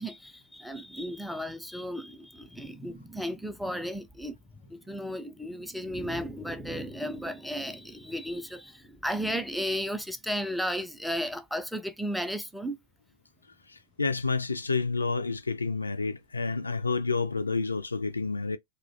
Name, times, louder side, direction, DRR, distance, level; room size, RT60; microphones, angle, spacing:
voice 1, 0.0-4.3 4.7-12.8, equal, ahead, 0.4 m, -34 dB
voice 2, 14.0-18.6, left 4 dB, 80° left, 0.3 m, -29 dB
2.4 x 2.1 x 2.6 m
figure-of-eight pair, 90°, 0 cm